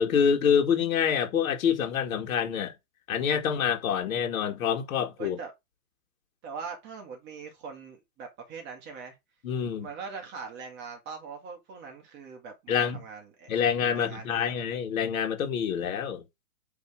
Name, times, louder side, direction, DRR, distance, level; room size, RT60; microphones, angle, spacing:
voice 1, 0.0-2.7 3.1-5.4 9.4-9.9 12.7-13.0 13.5-16.2, left 7 dB, 75° left, 2.4 m, -26 dB
voice 2, 5.2-5.5 6.4-9.2 9.8-13.5 13.9-14.6, right 5 dB, 25° right, 2.0 m, -41 dB
8.1 x 3.7 x 4.9 m
supercardioid pair, 155°, 42 cm